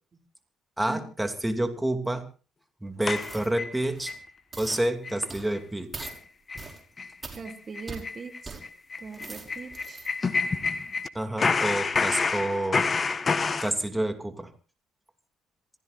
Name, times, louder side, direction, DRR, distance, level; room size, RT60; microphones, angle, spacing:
voice 1, 0.8-2.3 2.8-4.1 4.6-6.1 11.1-12.9 13.6-14.5, right 1 dB, 10° right, 6 dB, 2.8 m, -29 dB
sound 1, 3.1-4.2 4.6-4.7 5.0-5.3 5.5-5.6 6.0-6.2 6.5-6.7 7.0-7.1 7.4-11.1 11.4-13.7, left 4 dB, 40° left, 1.4 m, -28 dB
sound 2, 3.2-3.5 3.9-4.2 4.5-4.8 5.3-5.5 5.9-6.2 6.6-6.8 7.2-7.4 7.9-8.0 8.5-8.6 9.0-10.1 10.6-10.7, right 3 dB, 30° right, 5.3 m, -42 dB
voice 2, 7.4-8.6 9.0-10.1, right 5 dB, 45° right, 5 dB, 2.9 m, -40 dB
27.0 x 16.5 x 2.6 m, 0.36 s
hypercardioid pair, 55°, 0 cm